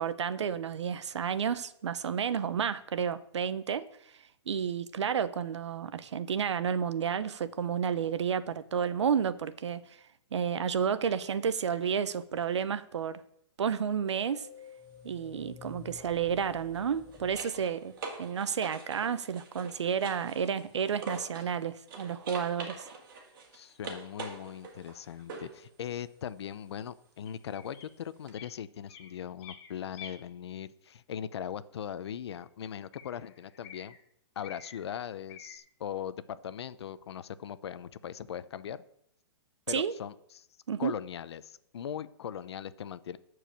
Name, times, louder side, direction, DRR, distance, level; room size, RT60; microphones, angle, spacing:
voice 1, 0.0-3.9 4.5-9.8 10.3-13.2 13.6-14.5 15.0-17.9 18.2-22.9 39.7-39.9 40.7-40.9, right 7 dB, 85° right, 0.8 m, -31 dB
sound 1, 13.9-18.5, left 8 dB, 15° left, 0.4 m, -52 dB
sound 2, 14.1-14.3 16.6-21.6 21.9-25.6 28.3-28.4, right 4 dB, 50° right, 2.2 m, -44 dB
voice 2, 23.5-34.0 34.4-38.8 39.7-40.5 40.8-43.2, left 9 dB, 70° left, 0.7 m, -40 dB
sound 3, 27.2-27.9 28.3-28.5 28.9-30.1 31.4-31.5 32.3-32.4 32.9-34.0 34.4-34.8 35.3-35.6, left 8 dB, 30° left, 1.8 m, -49 dB
12.0 x 4.8 x 7.5 m
hypercardioid pair, 155°, 14 cm